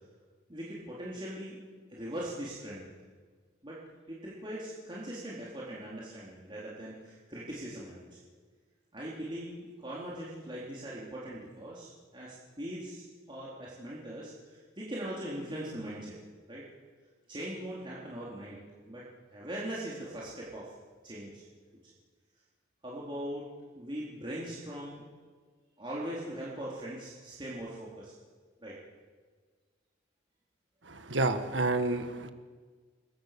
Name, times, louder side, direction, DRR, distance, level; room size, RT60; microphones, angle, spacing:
voice 1, 0.5-1.6 1.9-2.9 3.6-3.8 4.1-8.1 8.9-16.1 16.5-16.6 17.3-18.6 18.9-20.7 21.0-21.4 22.8-25.0 25.8-28.1 28.6-28.8, right 1 dB, 25° right, -6 dB, 4.0 m, -40 dB
voice 2, 30.9-32.3, right 2 dB, 70° right, 8 dB, 1.7 m, -29 dB
29.0 x 22.0 x 6.9 m, 1.5 s
head